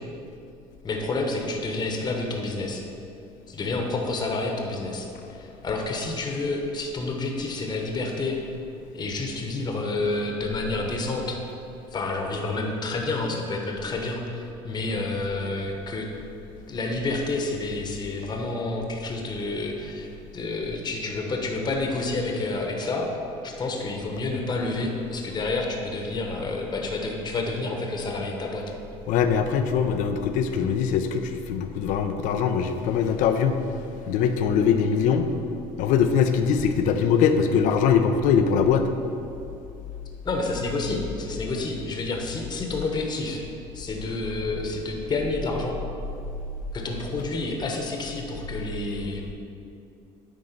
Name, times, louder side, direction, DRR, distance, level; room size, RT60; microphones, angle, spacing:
voice 1, 0.8-2.8 3.5-8.4 8.9-11.4 11.9-16.1 16.7-23.1 23.4-28.6 40.2-43.4 43.7-45.8 46.7-49.3, left 2 dB, 30° left, 1 dB, 1.1 m, -29 dB
voice 2, 29.1-33.6 34.1-35.3 35.8-38.9, left 7 dB, 65° left, 7 dB, 0.6 m, -22 dB
9.9 x 3.8 x 5.2 m, 2.7 s
supercardioid pair, 95°, 14 cm